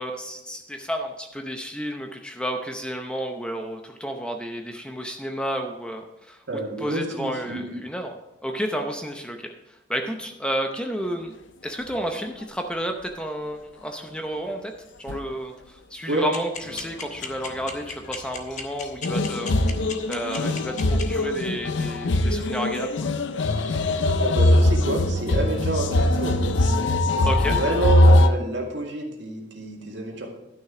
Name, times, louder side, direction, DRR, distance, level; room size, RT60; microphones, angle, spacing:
voice 1, 0.0-6.4 6.8-8.1 8.4-9.5 9.9-11.4 11.6-14.7 15.0-22.9 27.2-27.6, equal, 5° left, 4 dB, 0.7 m, -31 dB
voice 2, 6.5-7.8 16.1-16.3 24.2-26.4 27.2-30.3, right 2 dB, 70° right, 0 dB, 2.1 m, -28 dB
sound 1, 15.1-15.2 16.6-16.9 17.2-17.3 19.0-28.3, left 1 dB, 75° left, 0.6 m, -21 dB
sound 2, 16.3-21.0, left 5 dB, 40° left, 1.1 m, -33 dB
12.0 x 6.4 x 4.9 m, 0.91 s
head